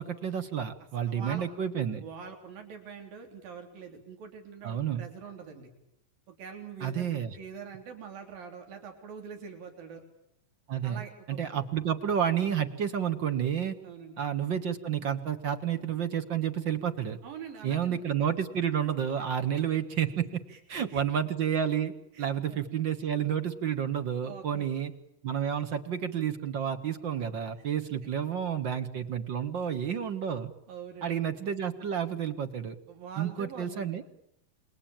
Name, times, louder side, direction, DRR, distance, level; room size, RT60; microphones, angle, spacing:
voice 1, 0.0-2.0 4.6-5.0 6.8-7.4 10.7-11.0 11.3-13.7 14.2-17.2 17.6-20.4 20.7-24.9 25.2-30.5 31.0-32.7 33.2-34.0, right 8 dB, 50° right, 10 dB, 1.4 m, -30 dB
voice 2, 1.1-1.5 2.0-5.7 6.3-7.1 7.3-10.0 10.8-11.6 13.8-14.2 17.2-18.1 19.2-19.3 20.5-21.0 22.1-22.6 24.2-24.7 30.7-31.2 32.9-34.0, right 6 dB, 90° right, 4 dB, 5.0 m, -44 dB
28.0 x 22.5 x 8.9 m, 0.77 s
omnidirectional pair, 3.9 m